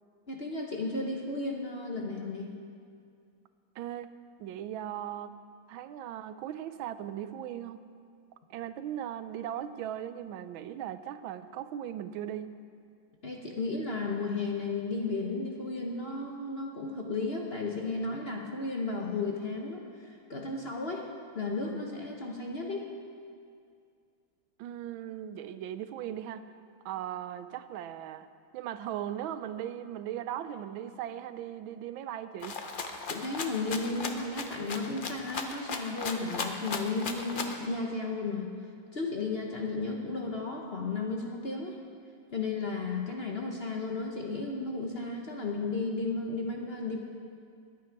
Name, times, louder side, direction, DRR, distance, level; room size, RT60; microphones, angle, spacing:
voice 1, 0.3-2.5 13.2-21.1 21.3-22.9 33.1-38.5 38.9-41.8 42.3-47.0, left 3 dB, 40° left, 0 dB, 0.9 m, -34 dB
voice 2, 3.8-4.1 4.4-5.4 5.7-7.8 8.5-12.5 24.6-26.4 26.8-28.3 28.5-32.6, right 10 dB, 85° right, 12 dB, 1.4 m, -38 dB
Rattle (instrument), 32.4-37.6, left 4 dB, 75° left, 0.4 m, -37 dB
21.5 x 8.6 x 4.6 m, 2.3 s
omnidirectional pair, 2.1 m